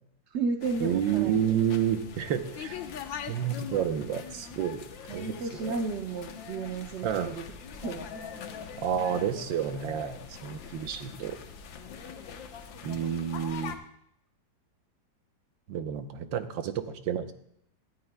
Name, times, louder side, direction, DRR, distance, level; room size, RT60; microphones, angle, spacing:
voice 1, 0.3-1.5 2.4-2.5 2.9-3.0 5.1-7.4 7.8-8.3, right 4 dB, 60° right, 4 dB, 0.7 m, -33 dB
sound 1, 0.6-13.8, left 7 dB, 85° left, 1.7 m, -43 dB
voice 2, 0.8-2.8 3.1-4.8 5.1-5.7 7.0-7.4 8.8-11.4 12.8-13.8 15.7-17.3, right 9 dB, 85° right, 8 dB, 1.5 m, -30 dB
18.0 x 12.5 x 2.2 m, 0.73 s
omnidirectional pair, 2.0 m